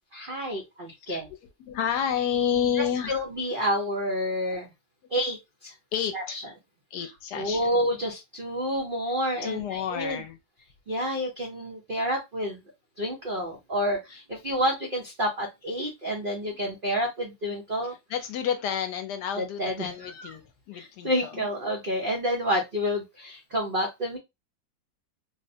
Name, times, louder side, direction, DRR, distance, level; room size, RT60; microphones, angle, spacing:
voice 1, 0.1-1.3 3.0-4.7 5.1-5.7 6.1-6.4 7.0-7.1 7.3-10.2 10.9-12.6 13.0-17.9 19.3-20.3 20.7-24.2, equal, 85° right, 0.4 m, -29 dB
voice 2, 1.6-3.2 5.9-6.4 6.9-7.8 9.4-10.4 18.1-20.4 20.7-21.5, left 8 dB, 75° left, 1.1 m, -30 dB
3.8 x 2.1 x 2.6 m
omnidirectional pair, 2.0 m